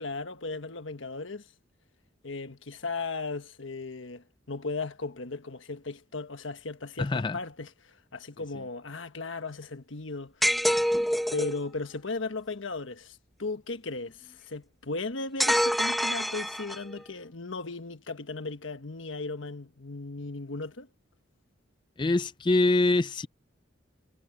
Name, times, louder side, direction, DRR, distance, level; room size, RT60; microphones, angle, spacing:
voice 1, 0.0-1.5 2.2-10.5 11.3-20.9, left 3 dB, 85° left, 1.4 m, -36 dB
voice 2, 7.0-7.4 22.0-23.3, left 2 dB, 25° left, 0.4 m, -24 dB
sound 1, 10.4-11.6 15.4-17.0, equal, ahead, 1.0 m, -26 dB
head